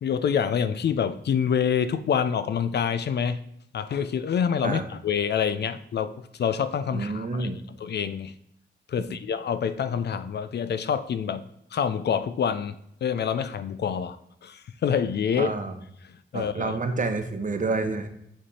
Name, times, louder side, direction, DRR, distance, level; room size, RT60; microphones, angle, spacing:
voice 1, 0.0-3.4 3.7-7.5 7.8-8.3 8.9-11.4 11.7-15.5 16.3-16.7, left 7 dB, 55° left, 0.4 m, -27 dB
voice 2, 6.9-7.6 9.1-9.2 15.4-15.8 16.3-18.1, right 3 dB, 40° right, 0.8 m, -29 dB
7.7 x 3.3 x 4.2 m
cardioid pair, 85°, 21 cm